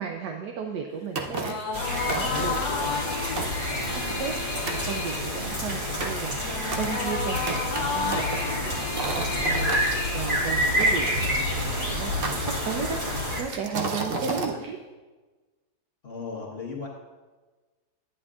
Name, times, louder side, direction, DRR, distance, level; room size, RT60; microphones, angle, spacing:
voice 1, 0.0-2.6 3.7-4.3 4.7-14.8, right 6 dB, 80° right, 3 dB, 1.3 m, -35 dB
sound 1, 1.2-11.0, left 5 dB, 70° left, 1.2 m, -33 dB
sound 2, 1.2-1.7 2.1-2.6 3.1-3.2 3.4-4.4 4.7-4.9 5.4-9.9 10.8-11.7 12.2-13.0 13.4-14.5, right 3 dB, 50° right, 0.7 m, -33 dB
sound 3, 1.7-13.4, equal, 30° right, 1.7 m, -28 dB
voice 2, 2.3-3.4 14.1-14.6 16.0-16.9, left 4 dB, 40° left, -3 dB, 1.3 m, -38 dB
11.0 x 9.4 x 2.4 m, 1.3 s
omnidirectional pair, 1.8 m